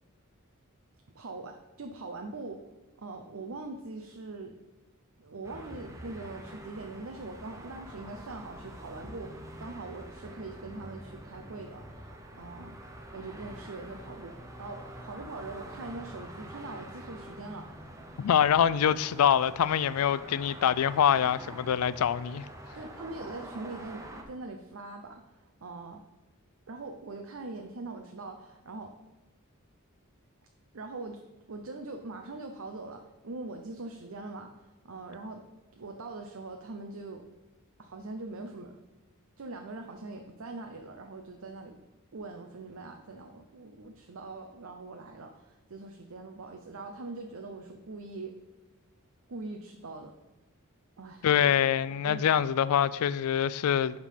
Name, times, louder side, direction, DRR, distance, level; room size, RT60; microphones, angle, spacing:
voice 1, 1.1-2.6 3.0-4.5 5.2-12.1 12.3-12.8 13.1-17.9 22.7-26.0 26.7-28.9 30.7-31.2 31.5-35.4 35.8-37.2 37.8-38.8 39.4-41.8 42.1-48.3 49.3-50.1 51.0-51.4 52.0-52.4, right 3 dB, 65° right, 0.6 m, -42 dB
sound 1, 5.4-24.2, right 1 dB, 15° right, 0.8 m, -46 dB
voice 2, 18.2-22.5 51.2-54.1, left 9 dB, 80° left, 0.3 m, -25 dB
11.0 x 3.7 x 5.6 m
head